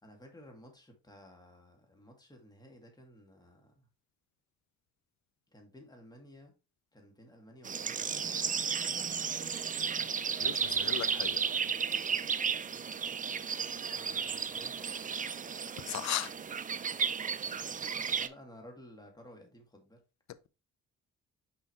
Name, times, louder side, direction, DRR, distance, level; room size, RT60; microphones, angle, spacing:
voice 1, 0.0-3.9 5.5-6.5 6.9-8.5 13.9-14.9 18.1-20.0, equal, 15° left, 2.1 m, -54 dB
sound 1, 7.6-18.3, right 6 dB, 25° right, 0.5 m, -34 dB
voice 2, 10.4-11.4 15.8-16.3, left 12 dB, 65° left, 0.7 m, -36 dB
5.8 x 5.6 x 3.1 m
cardioid pair, 90°, 30 cm